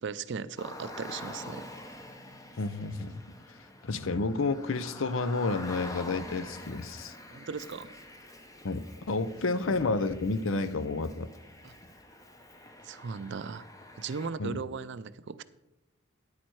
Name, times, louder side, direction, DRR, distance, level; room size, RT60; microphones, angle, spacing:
voice 1, 0.0-1.6 7.3-7.9 11.6-11.7 12.8-13.7 14.0-15.4, right 5 dB, 55° right, 15 dB, 0.4 m, -37 dB
Car, 0.6-14.3, left 1 dB, 15° left, 0.9 m, -46 dB
voice 2, 2.6-3.2 3.8-7.1 8.6-11.3 14.4-14.6, left 3 dB, 65° left, 14 dB, 0.6 m, -30 dB
10.5 x 8.6 x 4.7 m, 0.96 s
head